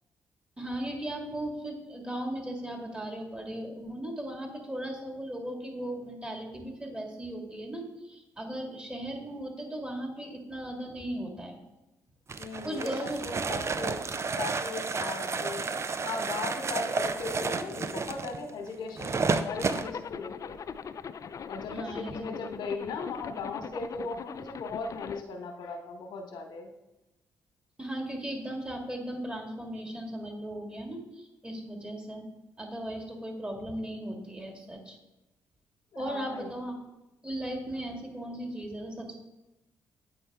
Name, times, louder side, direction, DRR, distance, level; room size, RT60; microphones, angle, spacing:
voice 1, 0.6-11.6 12.6-13.2 21.7-22.3 27.8-32.3 32.6-35.0 36.0-36.8 37.2-39.1, right 1 dB, 15° right, 2 dB, 1.8 m, -37 dB
sound 1, 12.3-19.9, right 4 dB, 35° right, 0.5 m, -31 dB
voice 2, 12.4-15.6 16.0-20.6 21.5-26.7 35.9-36.5, left 4 dB, 70° left, 4 dB, 1.0 m, -38 dB
Zipper (clothing), 19.3-25.2, left 7 dB, 45° left, 0.3 m, -41 dB
8.6 x 4.3 x 3.4 m, 0.97 s
supercardioid pair, 55°, 8 cm